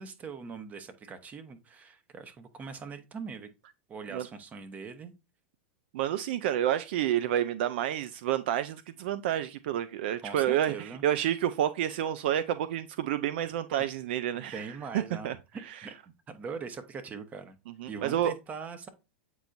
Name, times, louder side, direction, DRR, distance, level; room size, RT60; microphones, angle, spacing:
voice 1, 0.0-3.5 3.9-5.1 10.2-11.0 14.3-15.9 16.3-17.6 17.9-18.9, right 5 dB, 25° right, 1.1 m, -41 dB
voice 2, 5.9-14.7 14.9-15.3 17.8-18.3, right 11 dB, 65° right, 0.4 m, -29 dB
8.1 x 4.5 x 2.6 m
hypercardioid pair, 110°, 6 cm